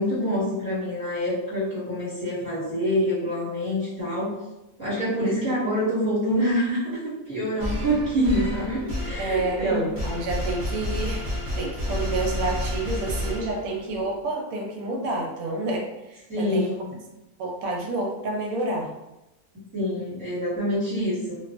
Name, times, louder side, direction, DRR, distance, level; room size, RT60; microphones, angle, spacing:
voice 1, 0.0-4.3 4.8-7.0 7.2-9.8 16.3-16.9 19.7-21.4, equal, 10° left, -11 dB, 1.2 m, -26 dB
voice 2, 5.2-5.5 9.2-16.7 17.4-18.9, right 2 dB, 85° right, 0 dB, 1.0 m, -29 dB
sound 1, 7.6-13.9, left 1 dB, 25° right, 0.5 m, -30 dB
2.6 x 2.2 x 2.4 m, 0.96 s
omnidirectional pair, 1.4 m